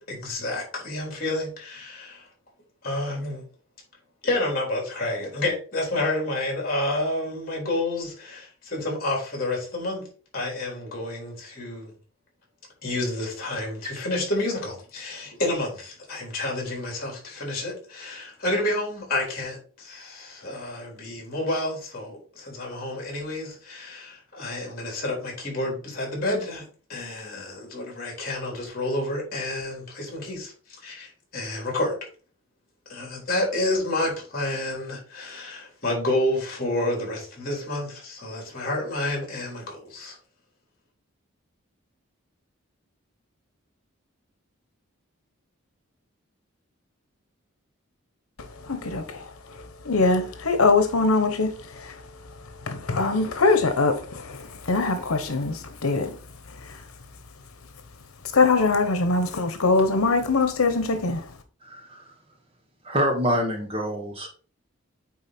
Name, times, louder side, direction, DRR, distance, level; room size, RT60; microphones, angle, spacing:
voice 1, 0.1-2.3 2.8-3.4 4.2-10.0 10.3-11.9 12.8-26.6 26.9-32.0 32.9-40.2 59.2-59.4, left 1 dB, 40° left, 3.9 m, -29 dB
voice 2, 48.7-49.0 49.9-51.5 51.9-52.0 52.7-54.4 54.7-56.1 58.3-61.2, left 3 dB, 90° left, 0.9 m, -22 dB
voice 3, 61.6-62.0 62.8-64.3, equal, 25° right, 1.5 m, -26 dB
8.8 x 3.8 x 4.3 m
head